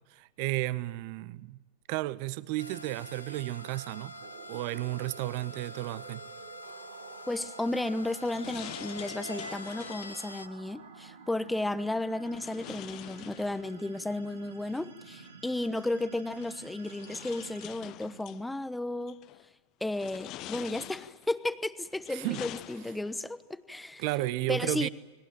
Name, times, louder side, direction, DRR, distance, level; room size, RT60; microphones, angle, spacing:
voice 1, 0.1-1.6 1.9-4.1 4.5-6.3 22.1-22.4 24.0-24.9, right 18 dB, 45° right, 0.9 m, -33 dB
sound 1, 2.6-10.5, equal, 85° left, 1.5 m, -45 dB
sound 2, 3.6-18.7, right 5 dB, 75° right, 3.1 m, -51 dB
voice 2, 7.3-19.2 19.8-24.0 24.5-24.9, left 2 dB, 5° left, 1.0 m, -33 dB
sound 3, 7.7-10.2 12.3-13.9 15.3-15.4 16.4-18.4 19.1-19.5 19.9-21.4 21.9-23.3, left 15 dB, 40° left, 0.8 m, -46 dB
29.5 x 21.5 x 9.0 m
figure-of-eight pair, 90°, 0 cm